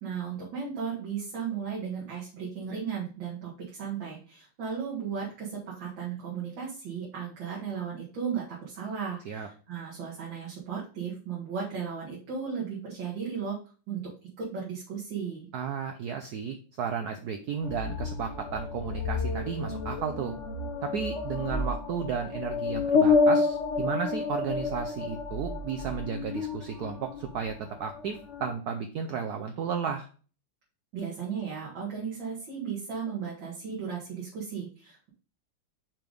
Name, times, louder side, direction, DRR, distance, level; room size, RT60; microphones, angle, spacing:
voice 1, 0.0-13.6 13.9-14.1 14.4-15.5 30.9-35.1, right 6 dB, 60° right, -5 dB, 2.3 m, -35 dB
voice 2, 15.5-20.4 20.8-30.1, right 6 dB, 90° right, 6 dB, 0.8 m, -33 dB
sound 1, 17.6-27.5 27.8-28.5, left 4 dB, 60° left, 0.7 m, -29 dB
5.7 x 3.4 x 5.2 m, 0.38 s
omnidirectional pair, 2.4 m